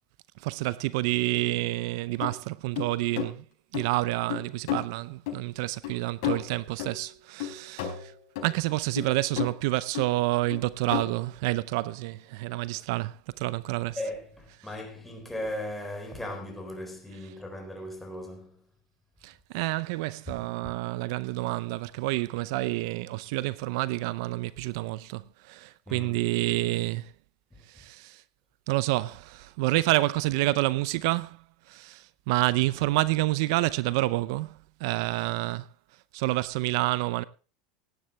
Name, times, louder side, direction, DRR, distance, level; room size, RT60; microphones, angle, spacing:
voice 1, 0.4-3.4 3.7-8.1 8.4-14.0 19.2-27.1 27.7-28.2 28.7-31.4 31.7-35.7 36.1-37.2, right 19 dB, 70° right, 0.6 m, -28 dB
sound 1, 2.2-2.3 2.8-3.3 3.7-3.8 4.3-4.8 5.3-5.4 5.8-6.0 6.2-7.0 7.4-8.5 9.0-9.6 9.9-10.1 10.5-11.2, left 10 dB, 70° left, 4.7 m, -32 dB
voice 2, 14.0-18.6 25.9-26.3 27.5-27.6, left 1 dB, 5° left, 4.2 m, -37 dB
16.5 x 10.5 x 3.3 m
supercardioid pair, 135°, 2 cm